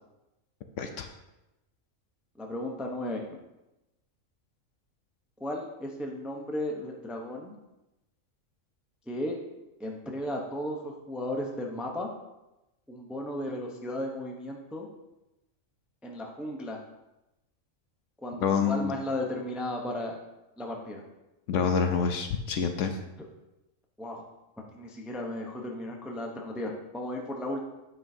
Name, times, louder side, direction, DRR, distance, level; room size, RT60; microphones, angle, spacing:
voice 1, 2.4-3.4 5.4-7.6 9.1-9.4 9.8-12.1 12.9-14.9 16.0-16.8 18.2-20.2 20.6-21.0 24.0-24.2 24.6-27.6, left 1 dB, ahead, 0 dB, 0.6 m, -35 dB
voice 2, 18.4-19.0 21.5-23.0, left 6 dB, 70° left, 6 dB, 0.9 m, -27 dB
9.4 x 5.7 x 2.7 m, 0.96 s
omnidirectional pair, 1.4 m